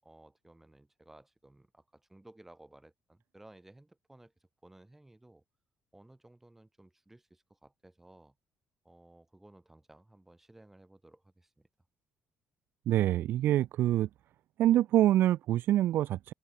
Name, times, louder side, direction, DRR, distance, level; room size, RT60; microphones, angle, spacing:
voice 1, 0.0-5.4 5.9-8.3 8.8-11.7, right 1 dB, 5° right, 7.2 m, -58 dB
voice 2, 12.9-14.1 14.6-16.3, right 13 dB, 65° right, 0.3 m, -25 dB
open air
cardioid pair, 160°, 4 cm